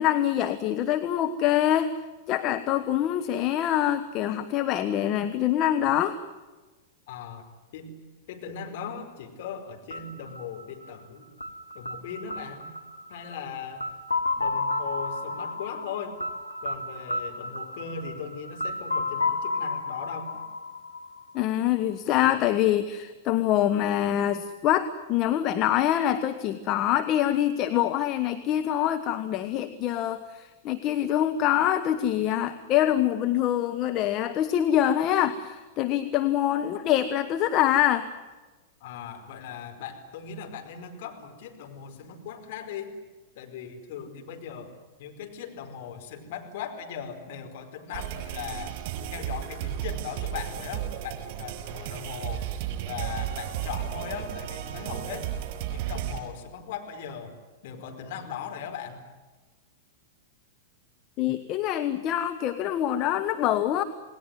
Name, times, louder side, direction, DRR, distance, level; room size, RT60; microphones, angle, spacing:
voice 1, 0.0-1.9 2.3-6.2 21.3-38.1 61.2-63.8, left 11 dB, 35° left, 8 dB, 1.3 m, -25 dB
voice 2, 7.1-7.5 7.7-7.9 8.3-11.3 11.7-12.7 13.1-13.8 14.4-16.2 16.6-20.4 38.8-42.9 43.3-44.7 45.0-48.8 49.1-52.5 52.9-55.3 55.7-57.3 57.6-59.0, left 7 dB, 55° left, 3 dB, 4.8 m, -39 dB
sound 1, 9.9-21.7, left 3 dB, 90° left, 1.7 m, -32 dB
sound 2, 47.9-56.2, right 11 dB, 50° right, 5.4 m, -34 dB
29.0 x 19.5 x 9.6 m, 1.3 s
figure-of-eight pair, 100°, 0 cm